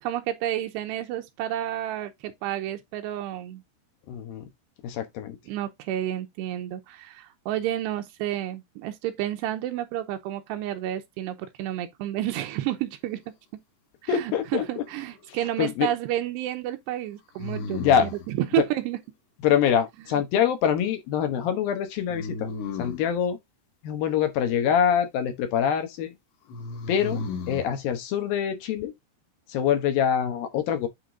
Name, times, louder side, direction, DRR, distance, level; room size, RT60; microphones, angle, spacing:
voice 1, 0.0-3.6 5.5-13.2 14.0-18.1 18.3-19.0 20.1-20.2, right 13 dB, 85° right, 2.9 m, -30 dB
voice 2, 4.1-4.4 4.8-5.4 14.1-14.8 15.6-15.9 17.7-18.1 18.6-18.7 19.4-22.5 22.8-23.4 23.8-26.1 26.9-27.2 27.5-28.9 29.5-30.9, left 8 dB, 70° left, 2.5 m, -24 dB
sound 1, 14.6-15.3 17.4-18.3 22.1-23.2 26.5-27.7, left 4 dB, 85° left, 3.8 m, -34 dB
8.8 x 3.6 x 3.7 m
omnidirectional pair, 4.9 m